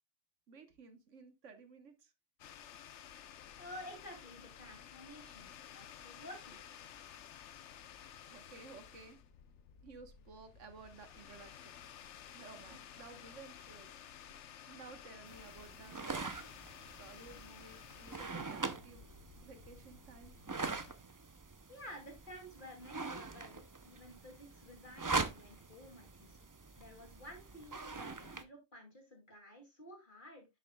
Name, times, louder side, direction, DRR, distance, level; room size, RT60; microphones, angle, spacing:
voice 1, 0.5-2.1 8.3-9.2 9.8-11.9 12.3-14.0 14.7-16.5 17.0-19.1 19.4-20.4, right 4 dB, 80° right, 1.5 m, -55 dB
sound 1, 2.4-20.9, left 9 dB, 70° left, 1.0 m, -54 dB
voice 2, 3.6-6.6 21.7-26.5 26.8-30.5, equal, 40° left, 2.6 m, -52 dB
sound 2, 15.3-28.4, right 3 dB, 30° right, 0.4 m, -43 dB
10.5 x 6.6 x 2.2 m
omnidirectional pair, 1.3 m